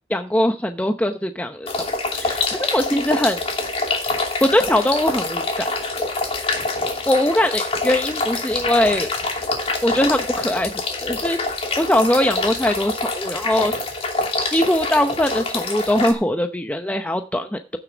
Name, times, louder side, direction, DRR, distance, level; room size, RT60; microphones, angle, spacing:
voice 1, 0.1-1.9 2.1-3.4 4.4-5.7 6.0-6.1 7.1-9.1 9.8-10.7 11.0-11.4 11.8-13.7 14.5-17.8, left 1 dB, 10° left, 6 dB, 0.7 m, -21 dB
sound 1, 1.7-16.1, left 3 dB, 35° left, 2.7 m, -25 dB
15.5 x 6.8 x 5.0 m, 0.34 s
head